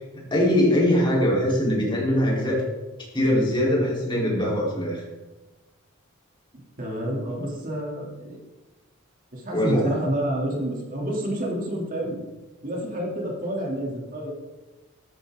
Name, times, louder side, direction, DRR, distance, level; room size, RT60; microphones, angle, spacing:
voice 1, 0.1-2.6 3.1-5.0 9.5-9.9, left 1 dB, 25° left, -4 dB, 4.2 m, -22 dB
voice 2, 6.8-8.4 9.3-12.2 12.6-14.3, right 1 dB, 40° right, -2 dB, 3.3 m, -29 dB
14.5 x 13.5 x 4.0 m, 1.1 s
head